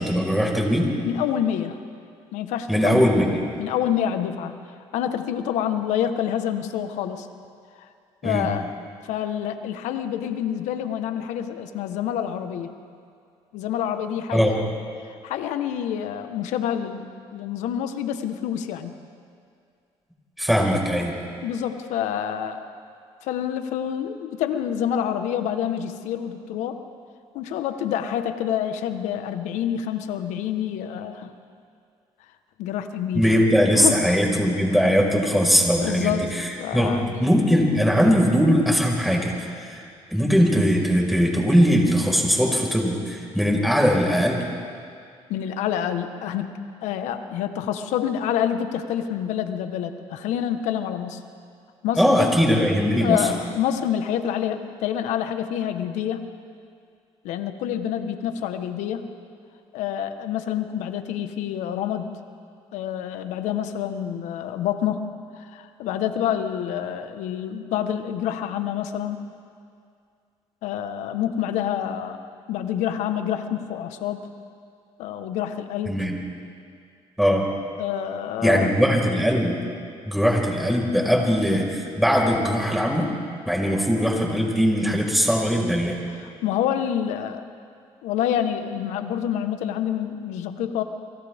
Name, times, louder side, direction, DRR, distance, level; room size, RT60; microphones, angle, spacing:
voice 1, 0.0-0.9 2.7-3.4 8.2-8.5 14.3-14.6 20.4-21.2 33.1-39.3 39.6-39.8 40.1-44.4 52.0-53.3 75.8-76.1 77.2-77.5 78.4-79.6 80.0-83.1 83.4-86.0, equal, ahead, -1 dB, 5.2 m, -20 dB
voice 2, 1.0-1.8 2.3-3.1 3.6-4.5 4.9-7.3 8.2-8.7 9.0-12.7 13.5-14.6 15.2-18.9 21.4-22.7 23.2-26.8 27.3-31.3 32.6-33.3 33.7-34.2 35.8-36.3 36.6-37.1 45.3-46.5 46.8-51.2 51.8-52.3 53.0-56.3 57.2-59.1 59.7-62.1 62.7-65.1 65.4-69.2 70.6-72.2 72.5-74.3 75.0-76.0 77.8-78.8 86.4-87.4 88.0-90.8, left 9 dB, 80° left, 8 dB, 1.4 m, -27 dB
30.0 x 24.0 x 3.7 m, 2.3 s
supercardioid pair, 80°, 12 cm